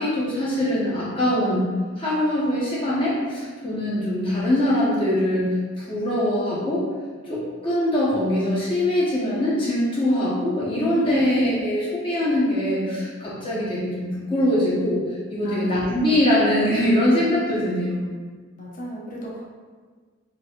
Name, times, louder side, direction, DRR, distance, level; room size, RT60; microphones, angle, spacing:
voice 1, 0.0-1.6 2.0-6.9 7.3-18.1, left 1 dB, 25° left, -8 dB, 1.0 m, -23 dB
voice 2, 10.9-11.7 15.4-16.1 18.6-19.5, right 1 dB, 40° left, -5 dB, 0.6 m, -30 dB
3.9 x 2.7 x 2.4 m, 1.5 s
head